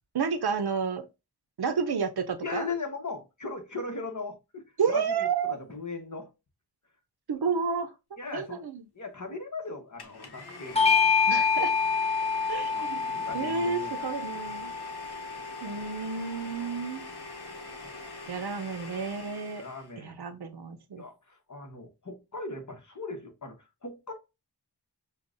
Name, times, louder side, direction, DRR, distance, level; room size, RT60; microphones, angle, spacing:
voice 1, 0.1-1.1 1.6-2.7 4.8-5.5 7.3-8.8 11.3-11.7 12.5-14.7 15.6-17.1 18.3-19.6 20.0-21.0, right 6 dB, 65° right, 0.6 m, -31 dB
voice 2, 2.4-6.3 8.2-8.6 8.9-11.1 12.7-14.1 15.4-15.7 16.6-16.8 17.8-17.9 19.5-20.2 20.9-24.1, left 3 dB, 45° left, 1.1 m, -39 dB
Domestic sounds home sounds, 10.0-20.0, left 2 dB, 70° left, 0.9 m, -44 dB
Bell / Doorbell, 10.7-15.6, left 5 dB, 15° left, 0.9 m, -27 dB
6.8 x 2.3 x 2.5 m
wide cardioid pair, 55°, 41 cm